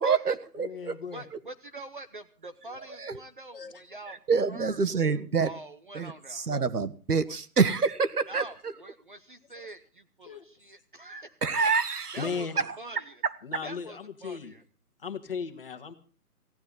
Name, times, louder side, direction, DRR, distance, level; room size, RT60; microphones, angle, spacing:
voice 1, 0.0-0.9 3.0-3.2 4.1-5.5 5.9-8.4 11.4-12.2 12.6-12.7 13.2-13.3, right 5 dB, 75° right, 13 dB, 1.7 m, -27 dB
voice 2, 0.6-1.2 3.5-3.8 9.6-9.7 10.2-10.5 12.2-12.6 13.4-14.6 15.0-15.9, left 5 dB, 35° left, 8 dB, 1.9 m, -36 dB
voice 3, 1.1-4.2 4.5-4.8 5.4-6.5 7.3-7.4 8.3-11.3 12.1-12.5 12.8-13.2 13.6-14.6, right 2 dB, 35° right, 9 dB, 0.9 m, -45 dB
19.0 x 15.5 x 3.9 m, 0.38 s
hypercardioid pair, 165°, 46 cm